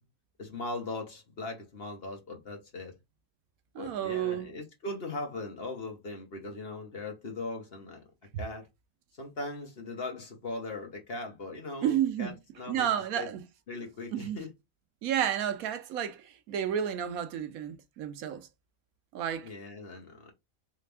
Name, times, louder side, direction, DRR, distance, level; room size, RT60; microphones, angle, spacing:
voice 1, 0.4-2.9 3.8-8.0 8.4-8.7 9.2-12.9 13.2-13.3 13.7-14.5 19.4-20.3, left 2 dB, 45° left, 1.3 m, -39 dB
voice 2, 3.7-4.5 11.8-12.4 12.7-13.4 14.1-14.4 15.0-18.5 19.1-19.5, right 10 dB, 80° right, 1.1 m, -31 dB
3.5 x 3.3 x 3.4 m
omnidirectional pair, 1.5 m